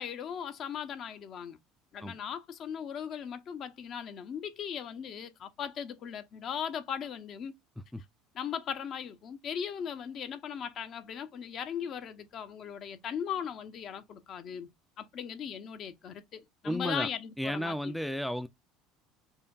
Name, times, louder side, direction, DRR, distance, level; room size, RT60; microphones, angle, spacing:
voice 1, 0.0-1.6 1.9-7.5 8.3-14.7 15.0-17.9, left 8 dB, 50° left, 0.7 m, -38 dB
voice 2, 16.6-17.1 17.4-18.5, equal, ahead, 0.4 m, -33 dB
5.4 x 2.2 x 2.4 m
supercardioid pair, 85°, 0 cm